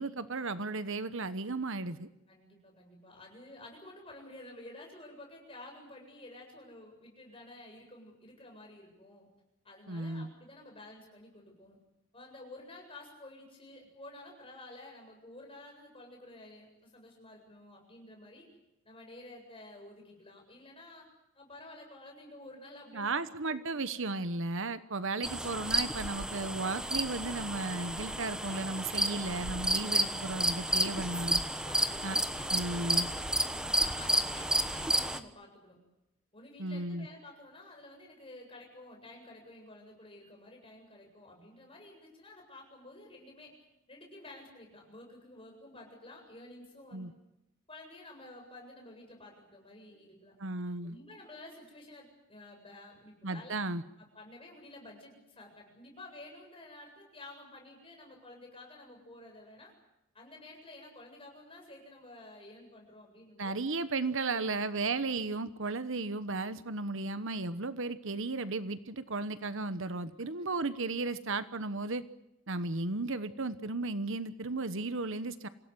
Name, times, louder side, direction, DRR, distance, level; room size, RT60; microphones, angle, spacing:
voice 1, 0.0-2.1 9.9-10.3 22.9-31.4 32.0-32.2 32.5-33.1 36.6-37.1 46.9-47.1 50.4-50.9 53.2-53.8 63.4-72.0 72.5-75.5, right 3 dB, 60° right, 13 dB, 1.1 m, -35 dB
voice 2, 2.3-9.3 9.6-11.8 12.1-18.4 18.8-21.1 21.3-23.1 23.5-23.6 31.6-35.8 36.3-43.5 43.9-47.1 47.7-50.3 50.8-53.6 54.0-59.7 60.1-63.6 64.3-64.5 70.4-70.5, left 2 dB, 25° left, 1 dB, 7.9 m, -51 dB
sound 1, 25.2-35.2, right 1 dB, 5° right, 1.1 m, -31 dB
27.0 x 17.0 x 9.7 m, 0.87 s
head